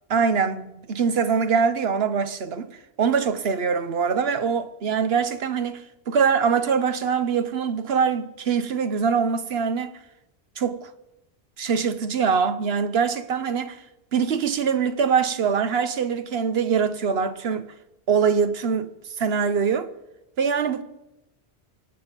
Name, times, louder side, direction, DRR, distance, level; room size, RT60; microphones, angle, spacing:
voice 1, 0.1-2.7 3.0-9.9 10.6-10.9 11.6-13.8 14.1-17.7 18.1-18.9 19.2-19.9 20.4-20.8, right 6 dB, 70° right, 1.1 m, -23 dB
24.5 x 8.8 x 5.3 m
omnidirectional pair, 1.1 m